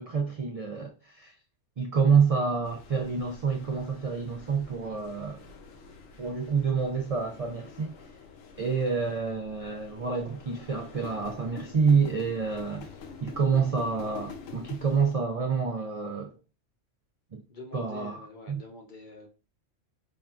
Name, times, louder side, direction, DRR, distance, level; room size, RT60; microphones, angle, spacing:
voice 1, 0.0-1.3 1.8-5.4 6.2-7.9 8.6-12.9 13.2-16.3 17.3-17.4 17.7-18.2 18.5-18.6, right 5 dB, 70° right, 0.3 m, -27 dB
sound 1, 2.6-15.1, left 5 dB, 80° left, 1.0 m, -47 dB
voice 2, 17.5-19.3, left 2 dB, 50° left, 0.7 m, -46 dB
5.3 x 2.3 x 2.4 m
omnidirectional pair, 1.3 m